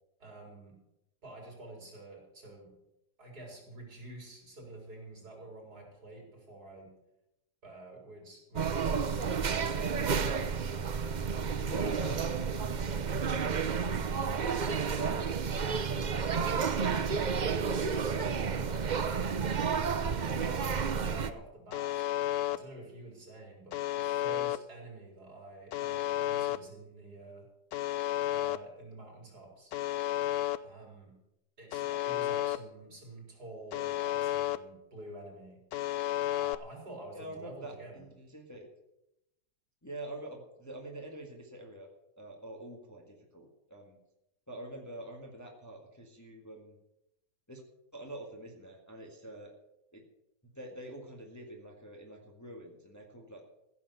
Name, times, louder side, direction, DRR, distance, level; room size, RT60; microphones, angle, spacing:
voice 1, 0.2-0.8 1.2-2.7 3.2-6.9 7.6-9.4 11.6-11.9 14.1-15.4 15.6-19.2 19.8-22.1 22.5-27.5 28.3-29.7 30.6-31.1 31.6-35.6 36.3-38.0, right 2 dB, 60° right, 0 dB, 5.2 m, -49 dB
sound 1, 8.5-21.3, right 6 dB, 85° right, 0.4 m, -31 dB
voice 2, 11.6-13.7 37.1-38.7 39.8-41.9 42.2-44.0 44.5-46.8 47.5-47.6 47.9-49.5 49.9-50.0 50.4-53.4, right 1 dB, 10° left, 0 dB, 1.8 m, -46 dB
Alarm, 21.7-22.6 23.7-24.6 25.7-26.6 27.7-28.6 29.7-30.6 31.7-32.6 33.7-34.6 35.7-36.6, left 14 dB, 70° left, 1.1 m, -32 dB
15.5 x 7.1 x 8.2 m, 0.86 s
omnidirectional pair, 1.9 m